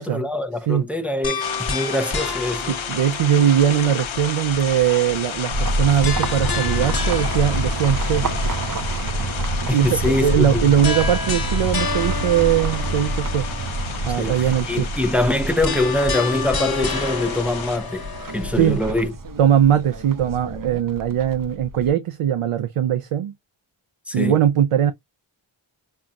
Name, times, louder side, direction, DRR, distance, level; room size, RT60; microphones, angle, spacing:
voice 1, 0.0-2.8 9.7-10.6 14.2-18.1 18.3-19.1 24.1-24.4, left 1 dB, 5° right, 0.5 m, -23 dB
sound 1, 1.2-4.4 6.0-9.0 10.8-14.0 15.6-19.1, left 4 dB, 45° left, 1.2 m, -30 dB
sound 2, 1.4-17.8, left 8 dB, 70° left, 0.8 m, -32 dB
voice 2, 2.7-8.3 9.7-13.5 14.1-14.9 18.6-18.8 19.4-23.3 24.1-24.9, right 10 dB, 90° right, 0.6 m, -20 dB
sound 3, 5.5-21.9, right 1 dB, 40° right, 0.7 m, -27 dB
5.5 x 2.3 x 2.3 m
wide cardioid pair, 85°, 50 cm